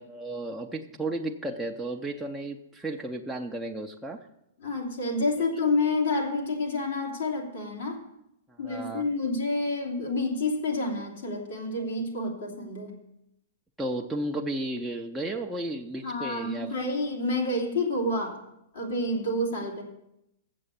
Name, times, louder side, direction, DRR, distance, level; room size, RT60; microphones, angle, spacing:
voice 1, 0.0-4.3 8.5-9.1 13.8-16.7, right 1 dB, 5° right, -1 dB, 0.6 m, -33 dB
voice 2, 4.6-8.0 8.6-12.9 16.0-18.4 18.7-19.8, left 2 dB, 80° left, 0 dB, 2.8 m, -29 dB
7.6 x 6.9 x 8.3 m, 0.84 s
hypercardioid pair, 135°, 0 cm